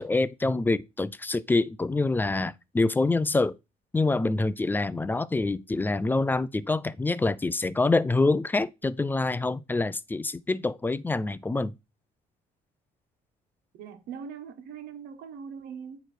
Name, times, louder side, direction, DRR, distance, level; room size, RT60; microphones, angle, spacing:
voice 1, 0.0-3.6 3.9-11.7, left 3 dB, 10° left, 0.3 m, -26 dB
voice 2, 13.8-16.0, right 7 dB, 80° right, 1.4 m, -41 dB
9.0 x 3.1 x 4.4 m
cardioid pair, 110°, 17 cm